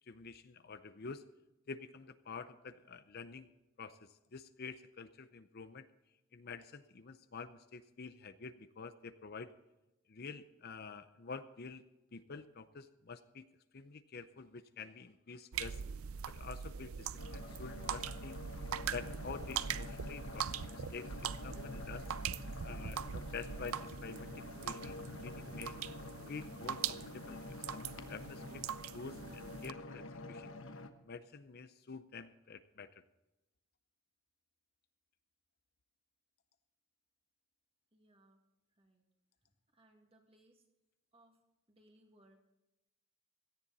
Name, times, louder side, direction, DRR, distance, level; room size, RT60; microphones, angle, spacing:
voice 1, 0.1-1.2 1.7-3.5 3.8-5.9 6.3-9.5 10.1-11.8 12.1-13.4 13.7-15.8 16.3-18.4 18.9-22.1 22.6-25.7 26.3-28.6 28.9-30.5 31.1-32.9, left 5 dB, 45° left, 11 dB, 0.6 m, -48 dB
sound 1, 15.5-29.7, right 8 dB, 80° right, 0.5 m, -42 dB
sound 2, 17.2-30.9, left 2 dB, 65° left, 1.1 m, -48 dB
voice 2, 37.9-38.4 38.7-39.1 39.4-40.6 41.1-41.4 41.7-42.4, right 1 dB, 25° right, 2 dB, 2.1 m, -67 dB
17.0 x 14.0 x 4.1 m, 0.95 s
head